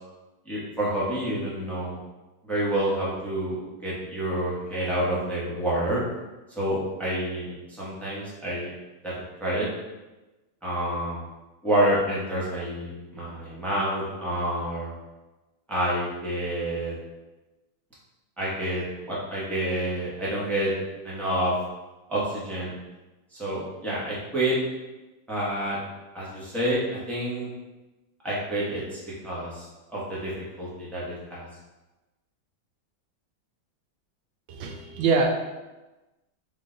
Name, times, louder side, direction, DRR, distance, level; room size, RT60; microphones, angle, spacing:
voice 1, 0.5-2.0 2.4-6.0 6.6-8.7 9.0-9.1 9.4-9.7 10.6-11.2 11.6-14.9 15.7-16.9 18.4-20.7 21.0-21.5 22.1-22.7 23.4-24.6 25.3-25.8 26.1-27.5 28.2-28.8 29.2-30.3 30.6-31.4, right 1 dB, ahead, -8 dB, 0.7 m, -28 dB
voice 2, 34.5-35.3, right 4 dB, 90° right, 3 dB, 1.4 m, -24 dB
3.7 x 3.3 x 3.8 m, 1.1 s
omnidirectional pair, 2.1 m